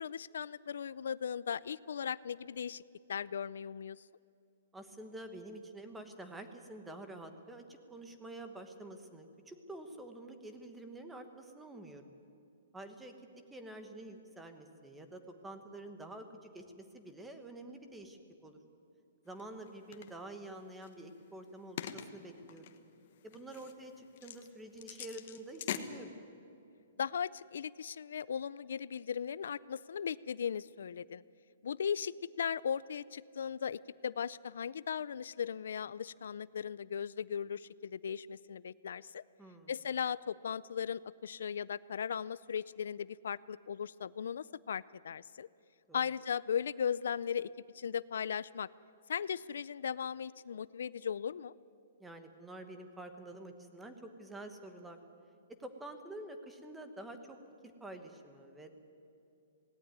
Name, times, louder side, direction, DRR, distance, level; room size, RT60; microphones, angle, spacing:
voice 1, 0.0-2.8 3.1-4.0 27.0-31.2 31.6-39.2 39.7-45.5 45.9-48.7 49.1-51.5, left 7 dB, 75° left, 19 dB, 0.4 m, -37 dB
voice 2, 4.7-12.1 12.7-13.1 13.5-18.6 19.2-22.8 23.2-26.1 39.4-39.7 45.9-46.1 52.0-55.0 55.6-57.4 57.6-58.7, right 1 dB, 5° right, 7 dB, 1.2 m, -48 dB
sound 1, 19.3-20.1 20.8-25.8, left 11 dB, 45° left, 1.2 m, -45 dB
18.5 x 17.5 x 9.5 m, 2.7 s
hypercardioid pair, 170°, 0 cm